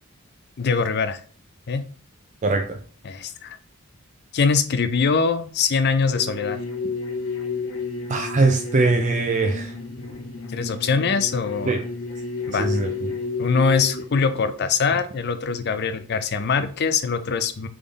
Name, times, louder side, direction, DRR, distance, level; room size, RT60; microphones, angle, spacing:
voice 1, 0.6-1.2 1.7-1.8 3.0-3.6 4.3-6.6 10.5-11.8 12.5-12.7 13.4-17.7, left 5 dB, 50° left, 11 dB, 0.5 m, -23 dB
voice 2, 2.4-2.8 8.1-9.7 11.7-11.8 12.6-12.9, right 3 dB, 35° right, 4 dB, 0.4 m, -21 dB
sound 1, 6.1-14.0, left 4 dB, 85° left, 0.9 m, -31 dB
3.7 x 3.5 x 4.0 m, 0.42 s
head